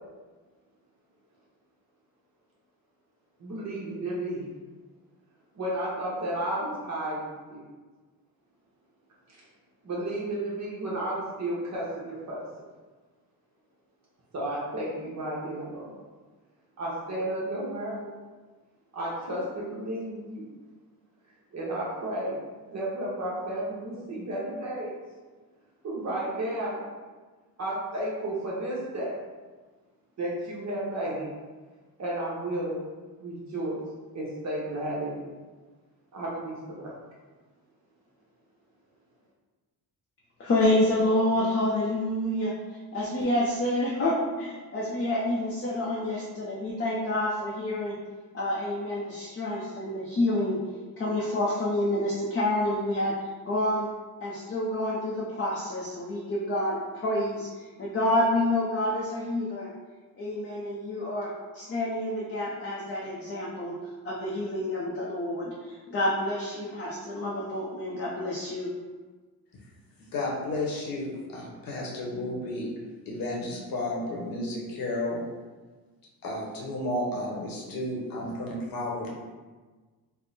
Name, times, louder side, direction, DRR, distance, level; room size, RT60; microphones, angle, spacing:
voice 1, 3.4-4.5 5.5-7.7 9.8-12.5 14.3-15.9 16.8-18.1 18.9-20.4 21.5-22.4 22.7-24.9 25.8-26.8 27.6-29.1 30.2-31.3 32.0-32.8 33.2-33.8 34.1-35.2 36.1-36.9, right 1 dB, 50° right, -6 dB, 0.9 m, -32 dB
voice 2, 40.4-48.0 48.3-50.6 51.0-53.9 54.2-57.5 57.8-59.7 60.2-63.7 64.0-68.8, left 1 dB, 35° left, -5 dB, 0.5 m, -28 dB
voice 3, 70.0-72.7 73.1-75.2 76.2-79.1, left 1 dB, 70° left, -2 dB, 1.0 m, -32 dB
3.5 x 2.0 x 4.0 m, 1.3 s
cardioid pair, 130°, 36 cm